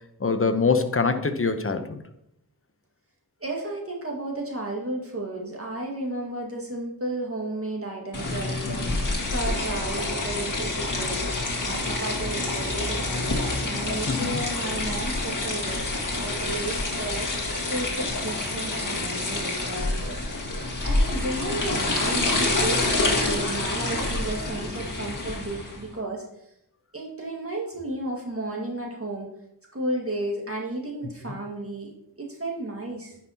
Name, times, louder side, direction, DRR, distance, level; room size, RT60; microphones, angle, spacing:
voice 1, 0.2-2.0 8.6-8.9 14.1-14.4 21.7-21.8, left 4 dB, 35° left, 8 dB, 0.8 m, -24 dB
voice 2, 3.4-11.3 11.6-26.2 26.9-29.3 29.7-33.2, right 2 dB, 35° right, -2 dB, 1.9 m, -33 dB
sound 1, 8.1-25.8, left 2 dB, 50° left, 2.0 m, -27 dB
10.0 x 5.6 x 2.9 m, 0.77 s
wide cardioid pair, 50°, 40 cm